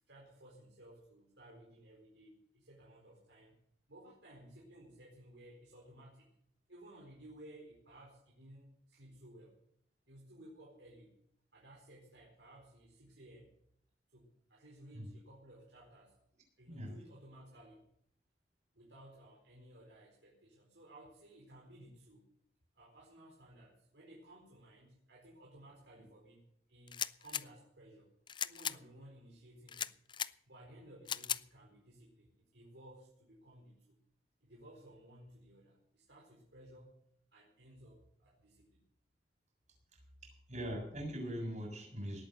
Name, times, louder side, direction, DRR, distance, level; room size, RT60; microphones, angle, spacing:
voice 1, 0.1-3.5 3.9-6.3 6.7-9.6 10.1-11.1 11.5-13.5 14.1-16.1 16.6-17.9 18.7-22.3 22.7-26.4 26.7-28.1 28.4-30.2 30.5-34.0 34.4-37.0 37.3-38.8, right 1 dB, 85° right, -3 dB, 4.4 m, -57 dB
sound 1, 26.9-27.4 28.3-28.8 29.7-30.3 31.1-31.4, left 8 dB, 25° left, 0.4 m, -37 dB
voice 2, 40.2-42.2, equal, 45° right, 1 dB, 7.2 m, -41 dB
19.0 x 8.9 x 6.6 m, 0.71 s
head